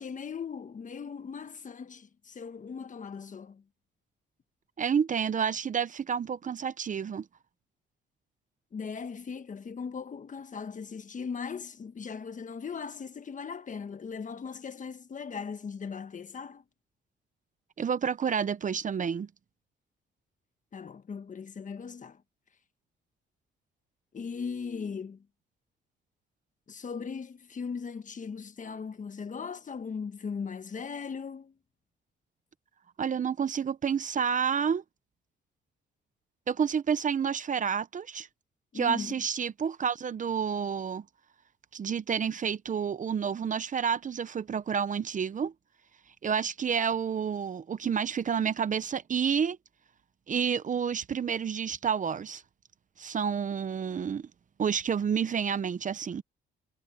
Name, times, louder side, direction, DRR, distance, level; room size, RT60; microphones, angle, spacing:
voice 1, 0.0-3.6 8.7-16.6 20.7-22.2 24.1-25.2 26.7-31.5 38.7-39.2, left 6 dB, 40° left, 1.5 m, -38 dB
voice 2, 4.8-7.2 17.8-19.3 33.0-34.8 36.5-38.3 38.7-41.0 41.7-45.5 46.2-49.6 50.3-52.4 53.0-54.3 54.6-56.2, right 7 dB, 40° right, 0.8 m, -29 dB
cardioid pair, 90°, 20 cm